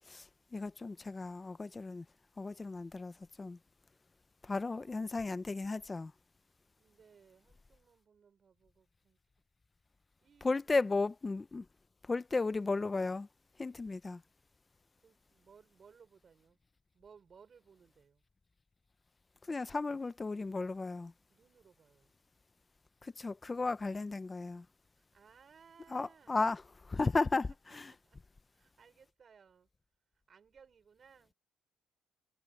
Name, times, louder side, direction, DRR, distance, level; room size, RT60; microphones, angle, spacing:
voice 1, 0.1-2.1 2.4-3.6 4.4-6.1 10.4-11.7 12.0-13.3 13.6-14.2 19.5-21.1 23.0-24.7 25.9-27.9, left 3 dB, 15° left, 0.6 m, -35 dB
voice 2, 0.8-1.1 4.5-5.0 6.8-9.2 10.2-10.6 15.0-16.6 16.9-18.2 21.3-22.1 24.8-26.4 27.7-28.2 28.5-29.7 30.1-31.3, right 6 dB, 35° right, 5.2 m, -63 dB
cardioid pair, 160°, 0 cm